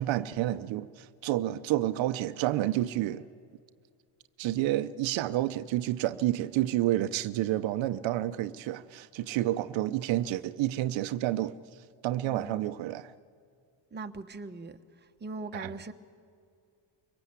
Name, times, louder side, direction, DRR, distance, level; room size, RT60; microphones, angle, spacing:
voice 1, 0.0-3.3 4.4-11.6 12.0-13.1 15.5-15.7, right 14 dB, 80° right, 0.8 m, -29 dB
voice 2, 12.2-12.7 13.9-14.8 15.2-15.9, right 3 dB, 20° right, 1.2 m, -40 dB
23.5 x 19.0 x 8.2 m
cardioid pair, 105°, 45 cm